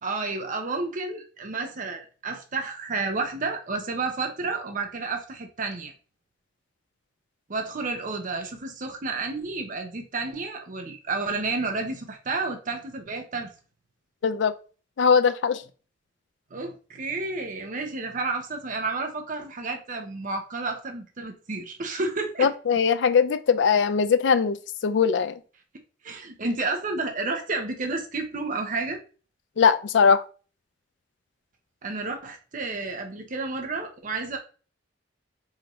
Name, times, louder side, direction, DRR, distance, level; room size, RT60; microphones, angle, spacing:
voice 1, 0.0-5.9 7.5-13.5 16.5-22.5 26.0-29.0 31.8-34.4, right 3 dB, 45° right, 0.7 m, -31 dB
voice 2, 14.2-14.5 15.0-15.6 22.4-24.6 24.8-25.3 29.6-30.2, left 6 dB, 70° left, 0.4 m, -20 dB
5.0 x 2.7 x 3.0 m
head